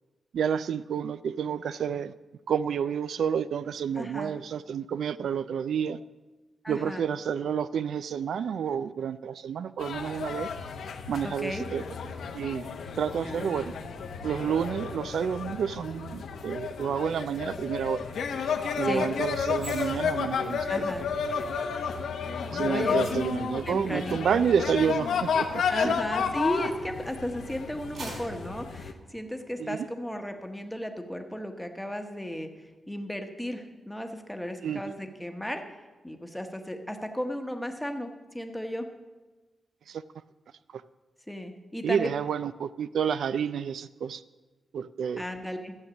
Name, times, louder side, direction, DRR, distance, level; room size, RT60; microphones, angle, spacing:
voice 1, 0.3-2.1 2.5-6.0 6.7-10.5 11.1-11.8 12.3-12.7 13.0-13.7 14.2-18.1 18.8-20.9 22.5-26.0 29.6-29.8 34.6-34.8 39.9-40.0 40.7-40.8 41.8-44.2 44.7-45.2, right 7 dB, 75° right, 14 dB, 0.3 m, -29 dB
voice 2, 3.9-4.3 6.6-7.0 11.2-11.7 12.8-12.9 13.2-13.8 18.8-19.1 20.7-21.1 22.6-23.2 23.7-24.4 25.7-32.5 32.9-35.6 36.0-38.9 41.3-42.1 45.2-45.8, equal, 5° left, 5 dB, 1.0 m, -35 dB
sound 1, 9.8-28.9, left 6 dB, 85° left, 1.0 m, -32 dB
sound 2, 19.5-26.9 27.4-29.8 30.1-30.4, right 2 dB, 50° right, 3.4 m, -49 dB
13.0 x 7.9 x 7.0 m, 1.2 s
wide cardioid pair, 165°, 0 cm